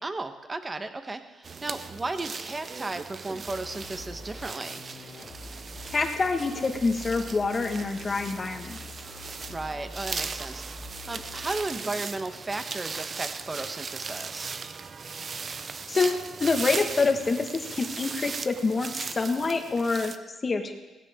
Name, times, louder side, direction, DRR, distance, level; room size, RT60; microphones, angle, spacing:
voice 1, 0.0-4.9 9.5-14.6, right 2 dB, 25° right, 8 dB, 1.2 m, -35 dB
sound 1, 1.4-20.2, right 5 dB, 40° right, 0.7 m, -38 dB
sound 2, 3.4-11.7, left 3 dB, 70° left, 2.3 m, -45 dB
voice 2, 5.9-8.8 15.9-20.1 20.4-20.7, left 4 dB, 35° left, 5 dB, 1.7 m, -26 dB
18.0 x 16.0 x 3.8 m, 1.1 s
cardioid pair, 90°, 0 cm